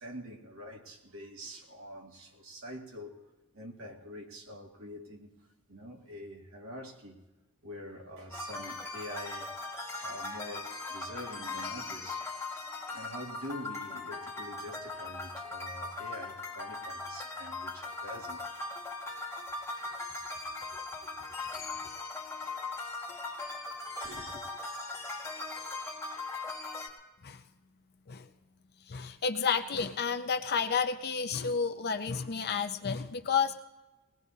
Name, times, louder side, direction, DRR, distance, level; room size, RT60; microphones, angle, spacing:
voice 1, 0.0-3.2 3.5-5.3 5.7-7.2 7.6-9.5 10.0-12.3 12.9-18.4 19.8-19.9 20.2-22.5 23.4-23.5 24.0-24.5, equal, 65° right, 2.2 m, -46 dB
sound 1, 8.3-26.9, left 3 dB, 15° left, 1.8 m, -39 dB
voice 2, 28.9-33.6, left 6 dB, 50° left, 0.6 m, -31 dB
20.5 x 19.0 x 2.8 m
head